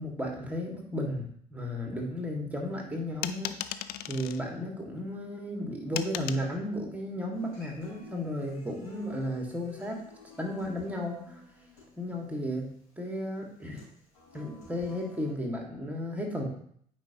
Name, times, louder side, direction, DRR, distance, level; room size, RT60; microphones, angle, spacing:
voice 1, 0.0-3.6 4.1-10.0 10.4-11.4 12.0-12.7 13.0-13.8 14.3-16.5, left 1 dB, 5° right, 0 dB, 2.1 m, -34 dB
sound 1, 3.2-4.4 5.9-6.5, left 12 dB, 55° left, 0.4 m, -36 dB
Human voice / Acoustic guitar, 7.3-15.3, left 3 dB, 85° left, 3.2 m, -52 dB
8.8 x 5.0 x 3.0 m, 0.63 s
figure-of-eight pair, 55°, 19 cm